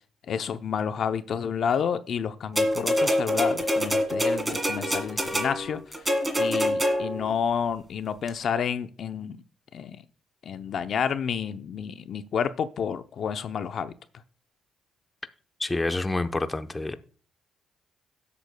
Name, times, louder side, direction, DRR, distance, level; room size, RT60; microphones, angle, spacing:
voice 1, 0.3-5.8 6.4-9.4 9.7-10.0 10.4-13.9, left 7 dB, 60° left, 0.6 m, -30 dB
sound 1, 2.6-7.3 8.3-8.4, equal, 10° right, 1.8 m, -25 dB
voice 2, 15.6-17.0, left 2 dB, 20° left, 0.8 m, -28 dB
17.0 x 8.3 x 2.2 m
cardioid pair, 90°, 0 cm